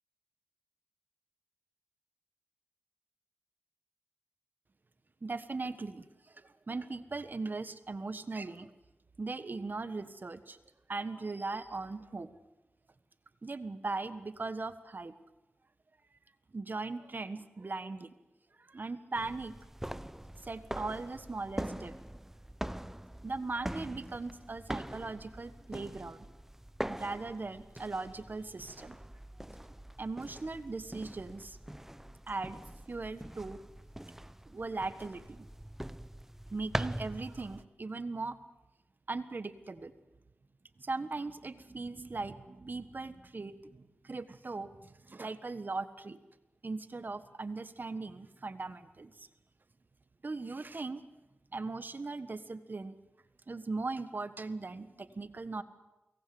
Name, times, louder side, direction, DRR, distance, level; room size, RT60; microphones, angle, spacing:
voice 1, 5.2-6.1 6.3-8.7 9.2-10.6 10.9-12.3 13.4-15.1 16.5-18.1 18.6-19.6 20.4-21.9 23.2-26.3 26.9-29.0 30.0-31.6 32.3-32.6 32.9-33.6 34.5-35.5 36.5-38.4 39.1-39.9 40.8-46.2 46.6-49.3 50.2-51.0 51.5-53.0 53.5-55.6, right 3 dB, 50° right, 11 dB, 1.4 m, -39 dB
sound 1, 19.2-37.7, right 1 dB, 10° right, 0.8 m, -43 dB
24.0 x 19.0 x 7.9 m, 1.0 s
cardioid pair, 45°, 4 cm